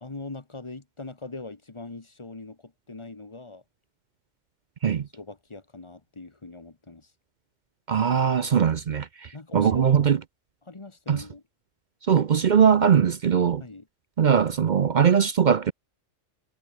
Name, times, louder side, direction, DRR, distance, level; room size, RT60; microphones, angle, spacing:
voice 1, 0.0-3.6 4.9-7.1 9.3-10.1 10.6-11.4 13.6-13.8, left 3 dB, 25° left, 1.4 m, -41 dB
voice 2, 7.9-10.2 11.1-11.2 12.0-13.6 14.2-15.7, right 7 dB, 50° right, 0.6 m, -21 dB
omnidirectional pair, 1.3 m